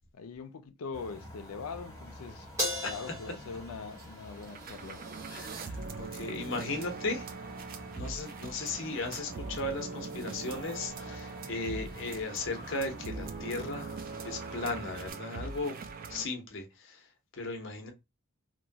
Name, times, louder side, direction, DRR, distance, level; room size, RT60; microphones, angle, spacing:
voice 1, 0.1-2.5 2.8-5.0, left 5 dB, 90° left, 0.4 m, -42 dB
sound 1, 0.9-15.1, left 1 dB, 15° left, 1.4 m, -49 dB
Crash cymbal, 2.6-5.1, equal, 15° right, 1.2 m, -37 dB
sound 2, 4.0-4.1 4.3-16.3, right 4 dB, 40° right, 0.3 m, -42 dB
voice 2, 5.3-7.3 8.0-13.9 14.2-15.8 16.1-17.1 17.3-17.9, left 3 dB, 55° left, 0.8 m, -36 dB
2.9 x 2.2 x 2.7 m
head